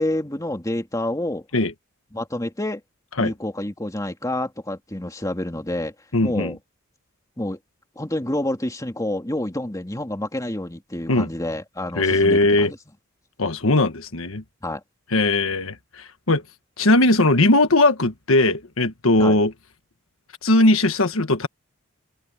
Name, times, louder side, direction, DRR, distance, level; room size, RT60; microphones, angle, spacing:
voice 1, 0.0-1.4 2.1-2.8 3.2-5.9 6.2-6.6 7.4-7.6 8.0-12.8 14.6-14.8 19.2-19.4, left 1 dB, 15° left, 2.5 m, -28 dB
voice 2, 6.1-6.5 11.1-11.3 12.0-12.7 13.4-14.4 15.1-16.4 16.8-19.5 20.4-21.5, left 2 dB, 75° left, 1.5 m, -19 dB
head